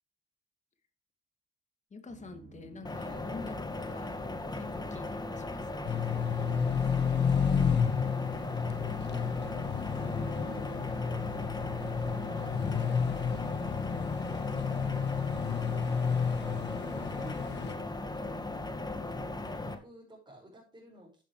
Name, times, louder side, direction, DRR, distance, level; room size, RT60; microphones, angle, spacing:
voice 1, 1.9-4.2 4.6-5.1 5.3-6.0, left 4 dB, 35° left, 7 dB, 2.4 m, -47 dB
sound 1, 2.1-17.8, right 5 dB, 55° right, 5.5 m, -51 dB
sound 2, 2.8-19.7, left 2 dB, 20° left, 1.9 m, -37 dB
sound 3, 5.8-17.7, left 7 dB, 60° left, 1.5 m, -31 dB
voice 2, 6.8-9.3 9.7-16.2 16.6-18.8 19.4-21.2, equal, 20° right, -5 dB, 6.0 m, -53 dB
11.5 x 10.5 x 3.3 m, 0.35 s
cardioid pair, 90°, 20 cm